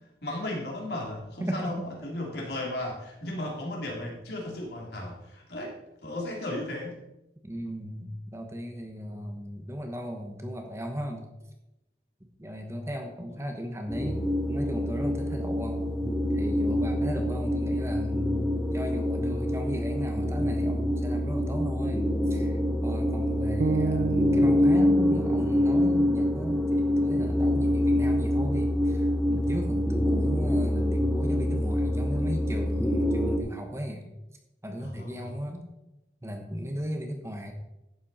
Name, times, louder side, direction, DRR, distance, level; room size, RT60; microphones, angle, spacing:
voice 1, 0.2-7.0 13.3-13.4 29.3-29.5 34.8-35.3, left 1 dB, 70° left, -1 dB, 3.2 m, -35 dB
voice 2, 1.4-1.8 7.4-11.3 12.4-16.0 16.3-22.0 22.3-34.1 34.6-35.6 36.2-37.5, equal, 15° right, 3 dB, 1.1 m, -36 dB
sound 1, 13.9-33.4, left 1 dB, ahead, 0.8 m, -26 dB
sound 2, 23.6-27.7, right 4 dB, 60° right, 0.5 m, -33 dB
11.5 x 8.6 x 4.2 m, 0.93 s
head